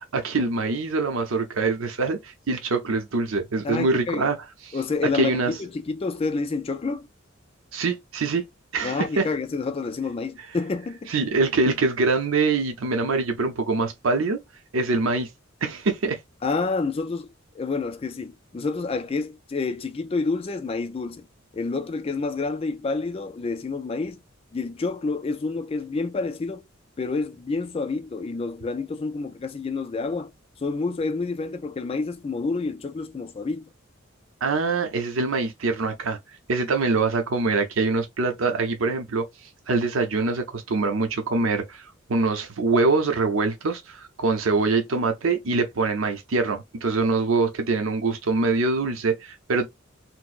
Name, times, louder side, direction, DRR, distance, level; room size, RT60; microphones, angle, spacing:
voice 1, 0.1-4.4 4.7-4.8 5.1-5.5 7.7-8.4 8.7-9.3 11.1-14.4 14.7-15.3 15.6-16.2 34.4-36.2 36.5-49.7, right 3 dB, 80° right, 0.7 m, -24 dB
voice 2, 3.6-4.3 4.7-7.1 8.8-11.1 16.4-17.3 17.6-21.2 21.5-24.2 24.5-26.6 27.0-30.3 30.6-33.7, left 4 dB, 30° left, 0.3 m, -28 dB
4.3 x 2.0 x 2.4 m
head